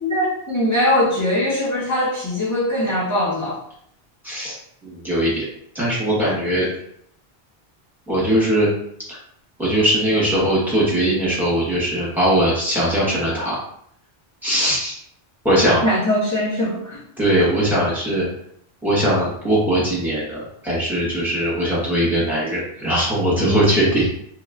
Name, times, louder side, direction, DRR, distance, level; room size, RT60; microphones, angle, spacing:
voice 1, 0.0-3.6 15.8-17.0 23.4-23.7, left 1 dB, 20° left, -9 dB, 0.6 m, -21 dB
voice 2, 4.2-4.6 4.8-5.4 5.7-6.7 8.1-8.7 9.6-13.6 14.4-14.9 15.4-15.9 17.2-18.3 18.8-24.1, right 1 dB, ahead, -8 dB, 1.1 m, -20 dB
3.0 x 2.9 x 2.5 m, 0.70 s
omnidirectional pair, 1.1 m